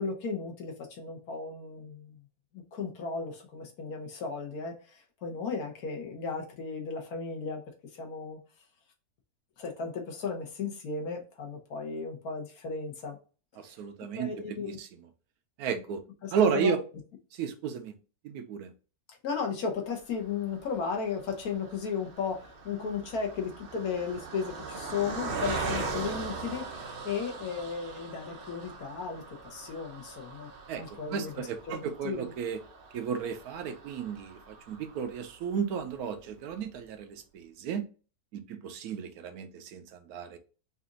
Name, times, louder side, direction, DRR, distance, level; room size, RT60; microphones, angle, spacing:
voice 1, 0.0-2.2 2.5-7.6 7.9-8.4 9.6-13.2 14.2-14.8 16.2-16.8 19.1-30.5 30.8-32.3, left 5 dB, 75° left, 2 dB, 1.4 m, -35 dB
voice 2, 13.6-14.3 14.7-14.9 15.6-16.0 16.3-16.8 17.3-17.9 18.2-18.7 30.7-32.6 32.9-37.9 38.3-40.4, right 7 dB, 80° right, 8 dB, 1.1 m, -33 dB
Car passing by, 20.1-35.6 36.1-36.2 36.5-36.7, right 4 dB, 55° right, 0.6 m, -41 dB
4.1 x 2.5 x 3.8 m, 0.36 s
omnidirectional pair, 1.6 m